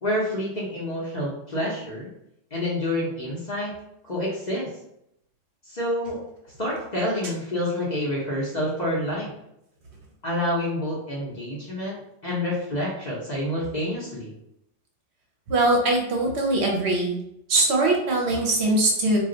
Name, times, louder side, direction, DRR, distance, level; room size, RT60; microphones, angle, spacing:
voice 1, 0.0-2.1 2.5-3.7 4.0-4.7 5.7-6.2 6.6-9.3 10.2-14.3, left 1 dB, 40° left, -5 dB, 0.7 m, -28 dB
voice 2, 15.5-17.2 17.5-19.2, right 2 dB, 65° right, 0 dB, 0.8 m, -21 dB
2.4 x 2.2 x 3.7 m, 0.78 s
omnidirectional pair, 1.3 m